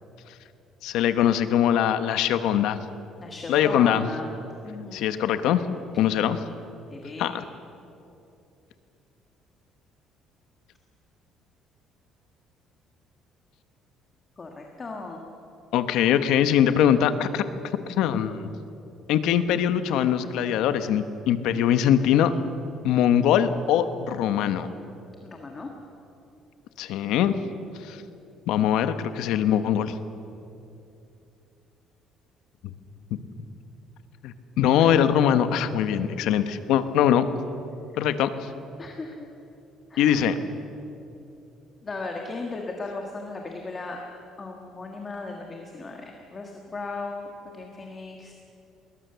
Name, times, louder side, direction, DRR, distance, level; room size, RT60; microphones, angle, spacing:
voice 1, 0.8-2.8 3.5-4.1 4.9-5.6 6.0-6.4 7.2-7.4 15.7-17.4 18.0-18.5 19.1-22.3 22.8-24.7 26.8-27.3 27.8-28.0 28.5-29.9 32.6-32.7 34.2-37.2 38.0-38.3 40.0-40.4, left 10 dB, 80° left, 11 dB, 1.1 m, -22 dB
voice 2, 3.2-4.3 4.6-5.2 5.9-6.0 6.9-7.3 14.4-15.2 25.2-25.7 34.8-34.9 38.8-39.3 39.9-40.3 41.8-44.0 44.4-48.3, left 3 dB, 25° left, 2 dB, 1.7 m, -36 dB
21.0 x 19.5 x 6.9 m, 2.7 s
cardioid pair, 150°, 0 cm